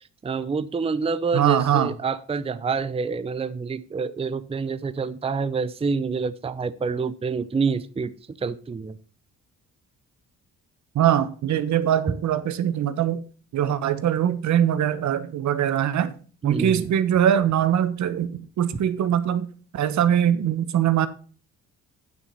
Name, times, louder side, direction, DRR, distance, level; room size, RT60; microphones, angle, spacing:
voice 1, 0.2-8.1 8.4-9.0 16.4-16.9, right 5 dB, 20° right, 0.6 m, -27 dB
voice 2, 1.3-1.9 10.9-13.2 13.5-16.1 16.4-19.5 19.7-21.1, right 10 dB, 70° right, 1.1 m, -22 dB
9.6 x 6.1 x 5.5 m
cardioid pair, 90°, 30 cm